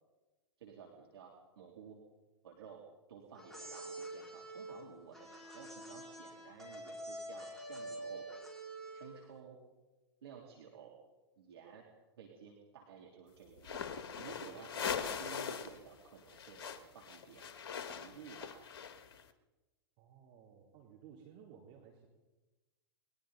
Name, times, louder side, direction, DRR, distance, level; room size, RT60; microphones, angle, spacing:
voice 1, 0.6-2.0 2.4-2.8 3.1-8.3 8.9-9.6 10.2-11.0 11.4-11.8 12.2-13.9 14.2-17.5 17.9-18.6, right 7 dB, 65° right, -1 dB, 3.4 m, -54 dB
sound 1, 3.3-9.2, right 1 dB, ahead, 4.7 m, -47 dB
sound 2, 13.6-19.2, left 7 dB, 55° left, 1.6 m, -41 dB
voice 2, 20.0-22.1, right 7 dB, 40° right, -1 dB, 3.6 m, -57 dB
30.0 x 21.5 x 4.1 m, 1.2 s
figure-of-eight pair, 100°, 14 cm